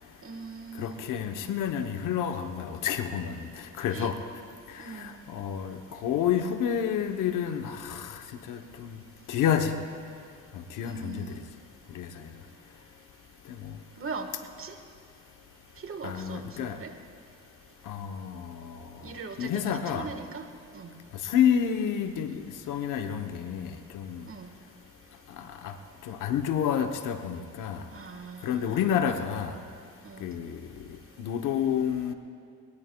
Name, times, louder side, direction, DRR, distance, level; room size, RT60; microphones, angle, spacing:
voice 1, 0.2-1.1 3.9-4.1 4.8-5.2 10.8-11.4 14.0-14.3 14.6-14.7 15.8-16.9 19.0-20.5 20.7-20.9 24.3-24.5 27.9-29.1 30.0-30.3, right 5 dB, 45° right, 6 dB, 1.4 m, -40 dB
voice 2, 0.8-3.5 3.8-4.2 4.7-8.2 8.5-9.0 9.3-9.7 10.5-11.4 11.9-12.3 13.5-13.8 16.0-16.8 17.9-18.8 19.4-20.1 21.2-24.2 25.4-25.8 26.0-27.8 28.4-29.6 30.2-30.7 31.2-32.1, left 8 dB, 80° left, 7 dB, 0.9 m, -29 dB
22.0 x 19.5 x 2.3 m, 2.3 s
cardioid pair, 75°, 30 cm